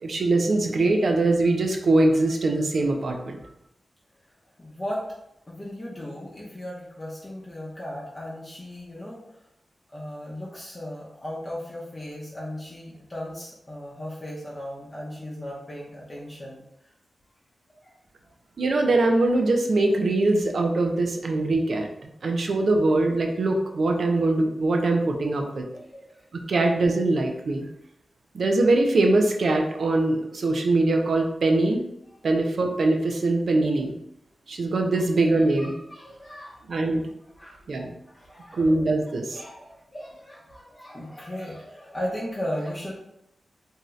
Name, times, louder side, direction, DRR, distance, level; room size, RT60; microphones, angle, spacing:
voice 1, 0.0-3.4 18.6-21.9 22.2-25.6 26.3-27.7 28.3-31.8 32.2-33.9 34.5-35.7 36.7-37.0 37.7-37.9 38.5-39.4, right 2 dB, 70° right, 3 dB, 0.4 m, -22 dB
voice 2, 4.6-5.0 5.5-9.2 9.9-16.6 17.8-18.0 25.7-26.2 35.0-36.6 37.3-38.8 39.0-43.0, equal, 30° left, -6 dB, 0.7 m, -37 dB
2.7 x 2.3 x 3.1 m, 0.80 s
cardioid pair, 55°, 0 cm